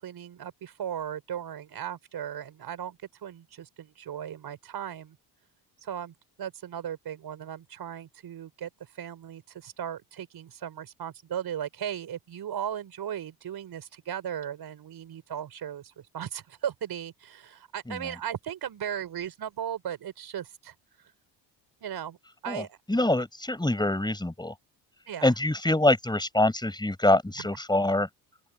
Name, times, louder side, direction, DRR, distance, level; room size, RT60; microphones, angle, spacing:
voice 1, 0.0-5.2 5.8-20.7 21.8-22.2 22.4-22.8 25.1-25.3 27.4-27.5, right 9 dB, 55° right, 5.3 m, -37 dB
voice 2, 22.5-24.5 25.2-28.1, left 1 dB, 10° left, 6.6 m, -25 dB
open air
supercardioid pair, 85°, 45 cm